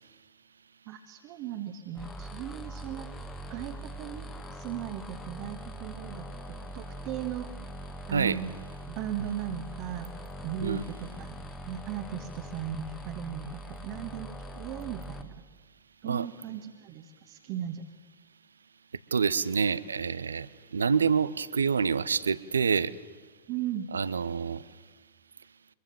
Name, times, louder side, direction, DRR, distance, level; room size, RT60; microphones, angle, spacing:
voice 1, 0.9-3.2 3.5-7.5 8.1-8.5 8.9-10.1 10.4-11.4 11.7-15.3 16.0-17.8 23.5-23.9, right 10 dB, 40° right, 5 dB, 1.5 m, -37 dB
sound 1, 2.0-15.2, right 1 dB, 15° left, 1.7 m, -42 dB
voice 2, 19.1-20.5 20.7-22.9 23.9-24.6, right 6 dB, 70° right, 19 dB, 0.7 m, -27 dB
24.5 x 22.0 x 7.1 m, 1.4 s
figure-of-eight pair, 90°, 0 cm